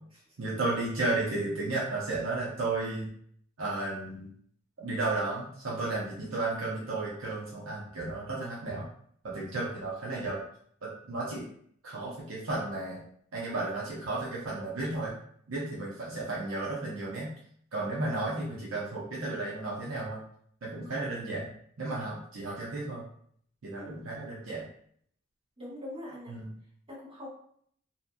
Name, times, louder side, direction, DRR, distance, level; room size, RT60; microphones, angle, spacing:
voice 1, 0.4-3.1 3.6-4.3 4.8-8.9 9.2-10.4 10.8-11.5 11.8-13.0 13.3-15.1 15.5-17.3 17.7-20.2 20.6-21.5 21.8-23.0 23.6-24.7 26.3-26.5, right 2 dB, 70° right, -6 dB, 0.7 m, -33 dB
voice 2, 25.6-26.4 26.9-27.3, left 1 dB, 30° right, -9 dB, 1.4 m, -42 dB
2.8 x 2.5 x 2.2 m, 0.63 s
head